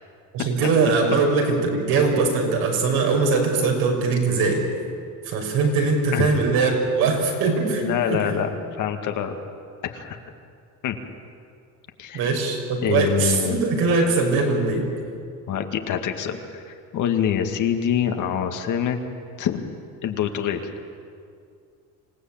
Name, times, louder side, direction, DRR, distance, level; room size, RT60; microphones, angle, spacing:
voice 1, 0.3-4.6 5.2-8.4 12.1-14.9, right 4 dB, 70° right, 1 dB, 6.0 m, -21 dB
voice 2, 7.8-8.5 8.8-9.4 9.8-10.2 10.8-11.0 12.0-12.2 12.8-13.6 15.5-19.0 19.4-19.6 20.0-20.7, left 9 dB, 55° left, 5 dB, 2.1 m, -25 dB
26.5 x 17.5 x 8.8 m, 2.4 s
cardioid pair, 145°, 36 cm